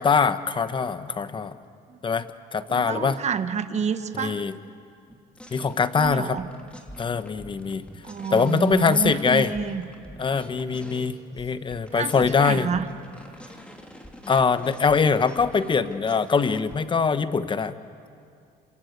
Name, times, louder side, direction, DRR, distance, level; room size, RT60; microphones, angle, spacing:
voice 1, 0.0-1.5 2.0-2.3 2.5-3.2 4.1-4.5 5.5-6.4 7.0-7.8 8.3-9.5 10.2-12.7 14.3-17.7, left 5 dB, 30° left, 12 dB, 1.1 m, -23 dB
voice 2, 2.7-4.5 6.0-6.4 8.0-9.8 11.9-12.9, right 6 dB, 40° right, 10 dB, 1.4 m, -29 dB
sound 1, 5.1-11.1 11.4-16.8, equal, 5° left, 3.1 m, -45 dB
27.5 x 26.5 x 8.1 m, 2.4 s
cardioid pair, 110°, 17 cm